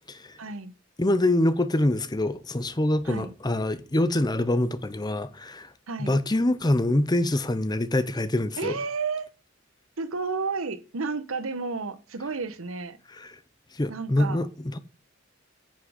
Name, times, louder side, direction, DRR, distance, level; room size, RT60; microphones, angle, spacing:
voice 1, 0.4-0.7 3.0-3.3 5.9-6.2 8.6-9.3 10.0-13.0 13.9-14.5, right 4 dB, 80° right, 1.0 m, -32 dB
voice 2, 1.0-5.7 6.0-8.8 13.2-13.4 13.7-14.8, left 1 dB, 20° left, 0.6 m, -25 dB
9.7 x 6.3 x 5.0 m
head